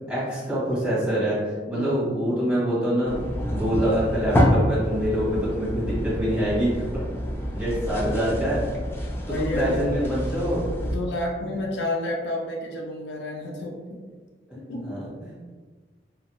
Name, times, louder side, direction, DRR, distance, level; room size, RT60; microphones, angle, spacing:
voice 1, 0.1-1.4 1.7-6.8 7.5-8.6 9.3-10.7 14.8-15.4, equal, 5° right, -11 dB, 1.4 m, -25 dB
voice 2, 1.7-2.1 9.2-9.8 10.8-14.0 14.7-15.0, left 1 dB, 75° left, -1 dB, 0.4 m, -30 dB
sound 1, 3.0-11.0, equal, 15° left, 0.3 m, -27 dB
2.9 x 2.7 x 2.2 m, 1.4 s
head